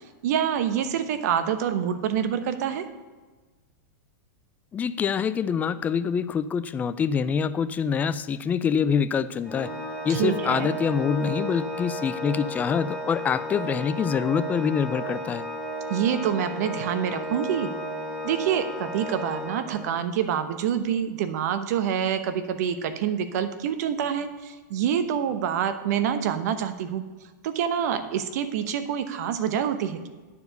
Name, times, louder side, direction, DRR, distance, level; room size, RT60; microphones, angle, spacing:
voice 1, 0.2-2.9 10.1-10.7 15.9-17.7 18.2-27.0 27.4-30.1, right 8 dB, 65° right, 10 dB, 0.9 m, -26 dB
voice 2, 4.7-9.7 10.0-15.4, left 7 dB, 15° left, 14 dB, 0.3 m, -25 dB
Organ, 9.4-20.2, equal, 10° right, 2.9 m, -34 dB
10.0 x 4.7 x 6.6 m, 1.3 s
supercardioid pair, 140°, 10 cm